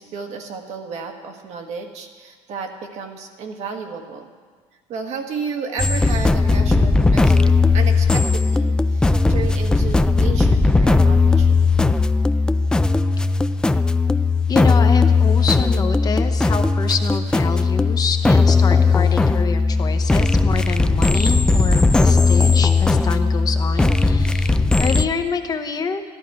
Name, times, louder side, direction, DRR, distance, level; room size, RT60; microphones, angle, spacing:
voice 1, 0.0-4.3 4.9-11.8, right 5 dB, 60° right, 3 dB, 1.5 m, -32 dB
sound 1, 5.8-25.1, left 3 dB, 5° left, 0.3 m, -17 dB
voice 2, 14.5-26.0, left 5 dB, 30° left, 7 dB, 0.8 m, -27 dB
13.0 x 12.0 x 4.8 m, 1.5 s
cardioid pair, 125°, 13 cm